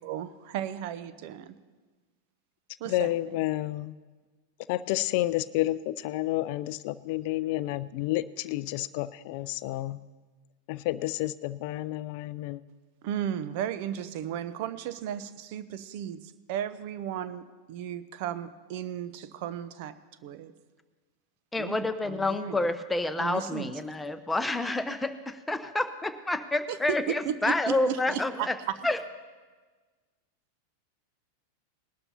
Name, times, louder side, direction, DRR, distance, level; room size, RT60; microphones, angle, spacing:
voice 1, 0.0-1.6 2.8-3.4 13.0-19.9 20.2-20.5 21.6-22.6 23.2-23.7 26.7-27.4 27.7-28.5, right 10 dB, 55° right, 13 dB, 0.6 m, -35 dB
voice 2, 2.9-3.9 4.7-10.0 10.7-12.6, left 16 dB, 55° left, 16 dB, 0.3 m, -30 dB
voice 3, 21.5-28.6 28.8-29.0, left 2 dB, 10° left, 9 dB, 0.8 m, -29 dB
20.0 x 12.0 x 2.9 m, 1.4 s
figure-of-eight pair, 90°, 0 cm